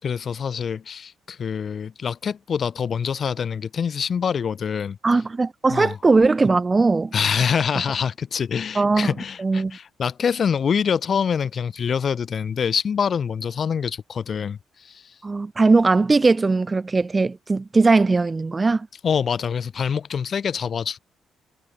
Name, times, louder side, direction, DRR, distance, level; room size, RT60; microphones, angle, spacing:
voice 1, 0.0-5.0 5.7-6.0 7.1-15.0 19.0-21.0, left 7 dB, 50° left, 1.6 m, -25 dB
voice 2, 5.0-7.1 8.7-9.8 15.2-18.9, right 3 dB, 25° right, 0.5 m, -19 dB
cardioid pair, 90°, 0 cm